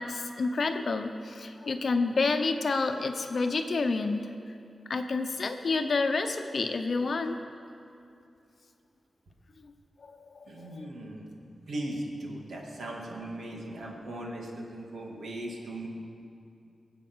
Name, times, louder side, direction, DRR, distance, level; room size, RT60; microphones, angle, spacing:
voice 1, 0.0-4.5 4.9-7.4 9.6-9.7 10.0-10.9, left 3 dB, 50° left, 6 dB, 0.9 m, -29 dB
voice 2, 10.5-11.2 11.7-15.9, right 1 dB, 75° right, -1 dB, 2.4 m, -38 dB
22.5 x 8.3 x 6.3 m, 2.5 s
wide cardioid pair, 175°, 0 cm